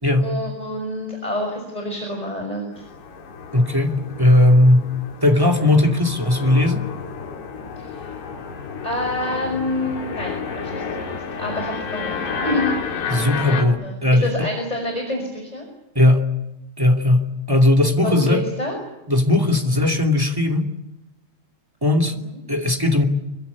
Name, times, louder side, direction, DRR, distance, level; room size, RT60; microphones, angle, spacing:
voice 1, 0.2-2.8 7.8-8.4 8.8-12.7 13.8-15.7 18.0-18.8 22.3-22.4, left 1 dB, 10° left, 2 dB, 5.5 m, -28 dB
sound 1, 2.7-13.6, left 5 dB, 65° left, 5.0 m, -31 dB
voice 2, 3.5-4.9 5.2-6.9 13.1-13.7 14.0-14.3 15.9-16.3 16.8-18.4 19.1-20.7 21.8-22.2 22.5-23.0, left 1 dB, 10° right, 2 dB, 0.9 m, -17 dB
26.5 x 24.5 x 8.4 m, 0.95 s
omnidirectional pair, 5.2 m